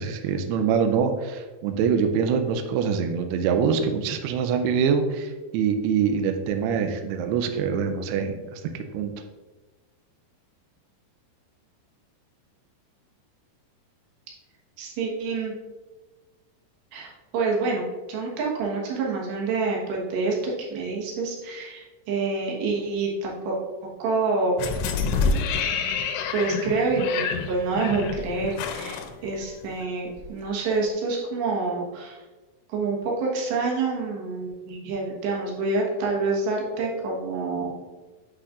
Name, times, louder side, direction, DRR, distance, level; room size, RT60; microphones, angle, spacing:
voice 1, 0.0-8.6 8.9-9.1, right 6 dB, 90° right, 6 dB, 2.3 m, -24 dB
voice 2, 14.8-15.6 16.9-24.6 26.3-32.2 32.7-37.7, right 3 dB, 75° right, -2 dB, 3.4 m, -27 dB
sound 1, 24.6-29.8 30.2-30.3, left 5 dB, 85° left, 2.9 m, -27 dB
7.7 x 6.3 x 2.5 m, 1.2 s
omnidirectional pair, 5.2 m